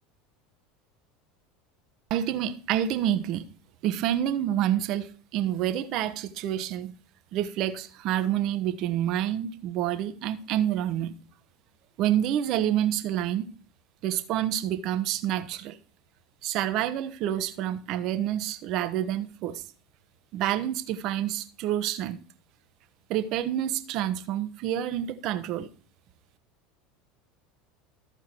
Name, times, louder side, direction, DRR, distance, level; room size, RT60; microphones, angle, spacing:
voice 1, 2.1-3.5 3.8-6.9 7.3-11.1 12.0-13.5 14.0-15.8 16.4-19.6 20.3-22.2 23.1-25.7, right 11 dB, 55° right, 1.0 m, -28 dB
14.0 x 4.7 x 4.5 m
hypercardioid pair, 90°, 0 cm